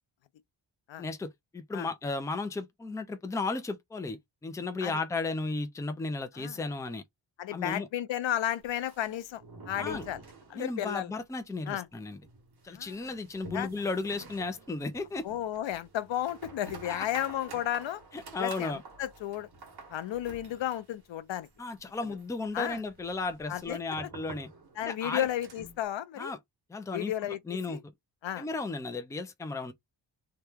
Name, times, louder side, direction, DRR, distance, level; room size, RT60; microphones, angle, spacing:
voice 1, 1.0-7.0 7.5-7.9 9.8-10.0 10.5-12.2 12.6-15.2 16.8-17.1 18.1-18.8 21.6-24.5 24.8-25.3 26.2-26.4 26.7-27.1 27.5-27.9 28.4-29.7, left 3 dB, 10° left, 0.4 m, -34 dB
voice 2, 7.4-9.4 9.7-10.2 10.5-11.1 11.7-11.9 12.7-13.1 13.5-13.7 15.2-18.0 18.4-19.5 19.9-21.5 22.5-22.8 23.5-23.8 24.8-26.3 26.9-27.4 27.7-27.8 28.2-28.5, left 12 dB, 80° left, 0.6 m, -33 dB
sound 1, 8.6-11.0 11.2-11.3 11.7-11.8 12.2-25.9, right 3 dB, 55° right, 1.3 m, -50 dB
2.9 x 2.2 x 3.4 m
wide cardioid pair, 125°, 44 cm